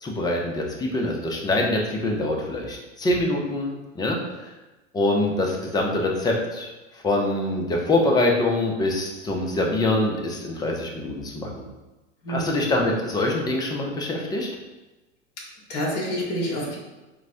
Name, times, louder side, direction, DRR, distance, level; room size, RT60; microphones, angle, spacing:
voice 1, 0.0-4.5 4.9-6.7 7.0-11.5 12.3-14.5, left 2 dB, 10° left, 0 dB, 0.5 m, -24 dB
voice 2, 12.2-12.5 15.4-15.5 15.7-16.8, equal, 40° left, -3 dB, 1.2 m, -28 dB
4.6 x 2.1 x 2.6 m, 1.1 s
hypercardioid pair, 100°, 37 cm